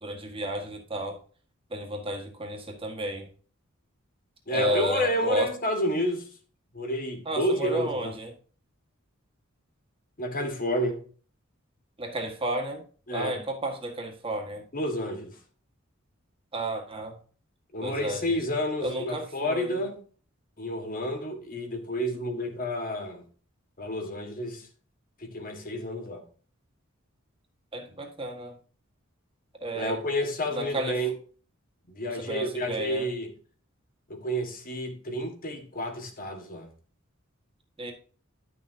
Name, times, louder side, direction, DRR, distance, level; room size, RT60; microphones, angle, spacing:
voice 1, 0.0-1.2 1.7-3.3 4.5-5.5 7.2-8.3 12.0-12.8 13.1-14.6 16.5-17.1 17.8-18.4 18.8-19.8 27.7-28.5 29.6-30.0 30.5-31.0 32.3-33.1 37.8-37.9, right 1 dB, 25° right, 1.7 m, -32 dB
voice 2, 4.5-6.3 6.7-8.2 10.2-11.0 13.1-13.4 14.7-15.3 17.7-20.0 20.6-23.2 23.8-24.7 25.2-26.2 29.7-31.1 31.9-33.3 34.1-36.7, equal, 45° left, 1.6 m, -30 dB
10.5 x 6.6 x 2.8 m
head